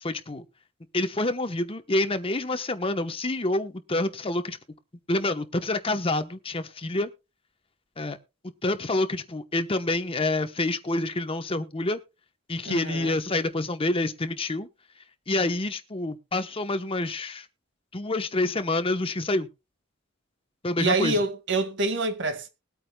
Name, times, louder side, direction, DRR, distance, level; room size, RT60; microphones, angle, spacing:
voice 1, 0.0-0.4 0.9-4.6 5.1-7.1 8.0-8.2 8.6-12.0 12.5-14.7 15.3-17.5 17.9-19.5 20.6-21.2, left 2 dB, 25° left, 1.0 m, -27 dB
voice 2, 12.7-13.2 20.8-22.5, right 3 dB, 65° right, 2.0 m, -26 dB
21.0 x 8.6 x 2.3 m
head